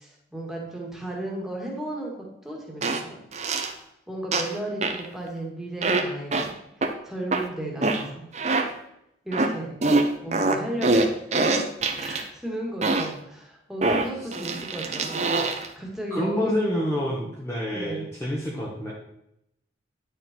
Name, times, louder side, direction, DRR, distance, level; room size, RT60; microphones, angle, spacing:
voice 1, 0.0-3.2 4.1-8.3 9.2-9.7 10.2-11.6 11.9-15.3 15.8-16.5 17.7-18.1, right 1 dB, ahead, -2 dB, 2.0 m, -34 dB
sound 1, 2.8-3.0 3.3-3.7 4.3-4.6 4.8-5.1 5.8-6.0 6.3-6.5 6.8-6.9 7.3-7.4 7.8-8.0 8.3-8.7 9.3-9.5 9.8-12.2 12.8-13.1 13.8-15.7, right 3 dB, 35° right, 0.8 m, -24 dB
voice 2, 16.1-18.9, equal, 15° left, -5 dB, 1.3 m, -28 dB
10.5 x 6.6 x 4.5 m, 0.81 s
head